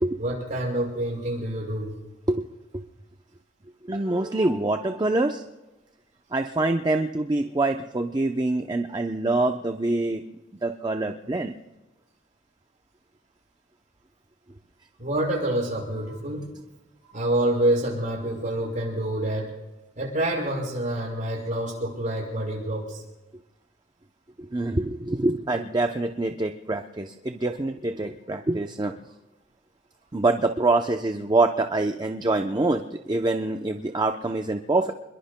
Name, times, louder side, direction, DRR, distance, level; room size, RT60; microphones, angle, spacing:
voice 1, 0.2-1.9 15.0-16.5 17.1-19.5 20.0-23.0, right 1 dB, 45° right, -2 dB, 6.1 m, -27 dB
voice 2, 3.8-5.4 6.3-10.2 10.6-11.5 24.4-28.9 30.1-34.9, right 2 dB, 20° right, 5 dB, 0.6 m, -25 dB
28.5 x 22.0 x 2.2 m, 1.1 s
head